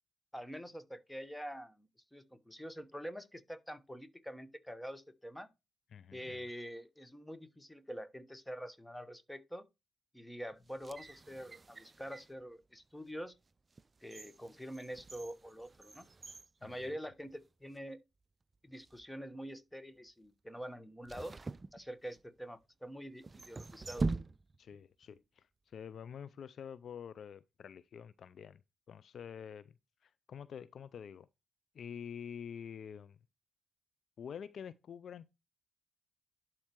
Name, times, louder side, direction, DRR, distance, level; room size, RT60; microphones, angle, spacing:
voice 1, 0.3-5.5 6.1-9.7 10.1-13.3 14.0-16.1 16.6-18.0 18.6-21.3 21.7-24.1, equal, 10° left, 1.1 m, -46 dB
voice 2, 5.9-6.4 16.6-16.8 24.6-28.6 28.9-29.7 30.0-31.3 31.7-33.2 34.2-35.3, left 7 dB, 60° left, 0.4 m, -47 dB
sound 1, 10.6-12.4 13.0-13.1 13.7-17.5 17.7-17.8 18.7-19.1 21.0-22.4 23.2-24.8 25.0-25.1, right 3 dB, 35° right, 0.4 m, -43 dB
11.5 x 4.4 x 3.0 m
hypercardioid pair, 50°, 0 cm